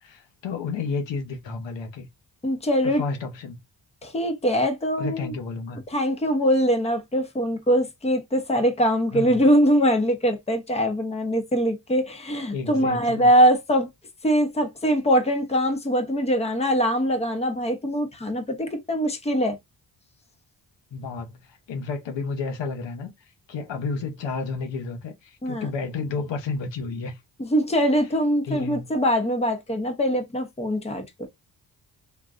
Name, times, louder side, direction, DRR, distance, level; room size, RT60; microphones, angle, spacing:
voice 1, 0.0-2.1 2.8-3.6 5.0-5.8 9.1-9.4 12.5-13.3 20.9-23.1 23.5-27.2 28.4-28.9, left 4 dB, 80° left, 0.9 m, -31 dB
voice 2, 2.4-3.0 4.0-5.3 5.9-13.9 14.2-19.6 25.4-25.7 27.4-31.3, equal, 15° left, 0.7 m, -22 dB
3.7 x 2.3 x 2.4 m
cardioid pair, 85°, 43 cm